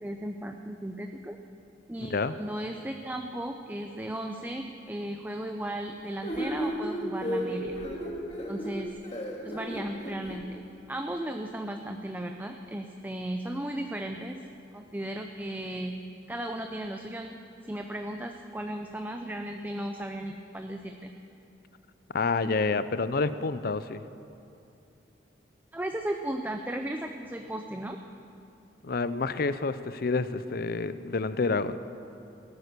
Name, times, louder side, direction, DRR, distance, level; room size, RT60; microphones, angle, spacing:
voice 1, 0.0-1.4 1.9-7.8 8.5-8.9 9.4-10.6 10.9-14.5 14.7-16.0 16.3-21.1 25.7-28.0, right 1 dB, 10° right, 4 dB, 0.5 m, -35 dB
sound 1, 6.2-10.4, equal, 35° left, 2.0 m, -33 dB
voice 2, 22.1-24.0 28.8-31.8, left 4 dB, 55° left, 14 dB, 0.5 m, -28 dB
17.5 x 9.7 x 6.7 m, 2.6 s
head